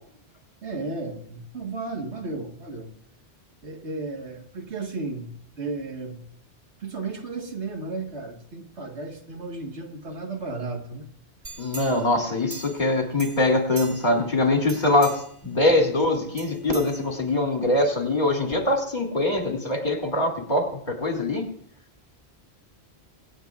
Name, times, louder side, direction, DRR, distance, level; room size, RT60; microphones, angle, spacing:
voice 1, 0.6-2.9 3.6-6.2 6.8-11.1, right 3 dB, 80° right, 2 dB, 1.9 m, -34 dB
sound 1, 11.4-12.9 13.2-14.3 14.6-15.4 16.4-17.5 18.0-18.1, right 4 dB, 55° right, 1.2 m, -41 dB
voice 2, 11.6-21.5, left 2 dB, 45° left, 1 dB, 2.5 m, -23 dB
25.5 x 9.6 x 2.4 m, 0.63 s
omnidirectional pair, 1.1 m